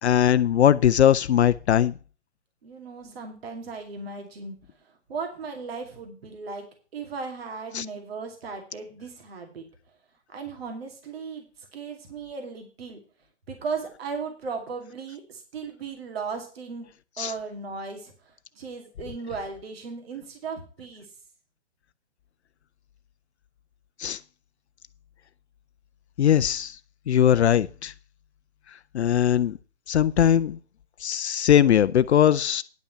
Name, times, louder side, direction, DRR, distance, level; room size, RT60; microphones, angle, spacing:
voice 1, 0.0-1.9 7.7-7.8 17.2-17.3 24.0-24.2 26.2-26.8 27.1-27.9 28.9-29.6 29.9-30.6 31.0-32.6, left 10 dB, 70° left, 15 dB, 0.5 m, -20 dB
voice 2, 2.6-4.6 5.1-6.7 6.9-9.7 10.3-13.0 13.5-16.9 17.2-21.1, right 4 dB, 60° right, 4 dB, 2.4 m, -36 dB
10.5 x 5.5 x 6.6 m, 0.37 s
figure-of-eight pair, 130°, 34 cm